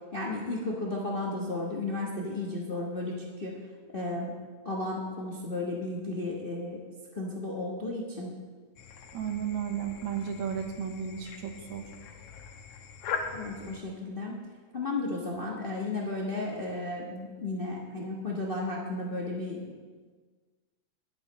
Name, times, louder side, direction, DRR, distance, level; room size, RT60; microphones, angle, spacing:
voice 1, 0.1-3.5 3.9-4.3 4.6-6.8 7.1-8.3 13.3-14.4 14.7-19.6, left 2 dB, 50° left, -2 dB, 0.6 m, -33 dB
sound 1, 8.8-13.8, left 6 dB, 75° left, 2.3 m, -41 dB
voice 2, 9.1-11.8, right 8 dB, 75° right, 5 dB, 2.4 m, -33 dB
20.0 x 7.6 x 4.1 m, 1.5 s
omnidirectional pair, 3.4 m